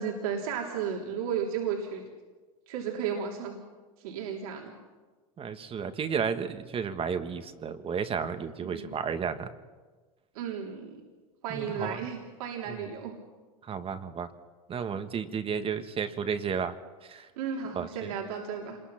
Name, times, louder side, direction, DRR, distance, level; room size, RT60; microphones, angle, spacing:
voice 1, 0.0-2.0 2.7-3.6 4.0-4.7 8.6-8.9 10.3-11.0 11.4-13.1 17.4-18.8, right 7 dB, 75° right, -1 dB, 3.4 m, -34 dB
voice 2, 5.4-9.5 11.5-12.1 12.7-12.8 13.6-14.3 14.7-17.3 17.7-18.1, right 6 dB, 30° right, 9 dB, 1.6 m, -33 dB
27.0 x 21.5 x 5.9 m, 1.3 s
hypercardioid pair, 100°, 18 cm